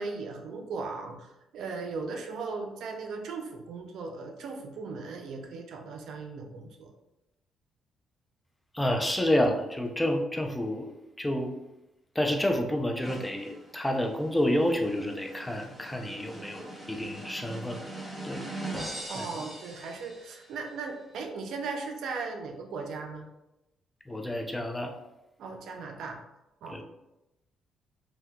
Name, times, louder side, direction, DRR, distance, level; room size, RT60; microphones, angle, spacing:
voice 1, 0.0-6.9 19.1-23.2 25.4-26.2 26.6-26.8, right 4 dB, 75° right, 4 dB, 0.4 m, -37 dB
voice 2, 8.7-11.5 12.1-17.9 18.2-18.4 19.1-19.5 24.1-24.9 26.7-26.8, left 1 dB, 10° left, 3 dB, 0.4 m, -29 dB
sound 1, 13.0-20.6, right 1 dB, 10° right, 0.8 m, -42 dB
3.5 x 2.7 x 2.2 m, 0.92 s
cardioid pair, 90°, 0 cm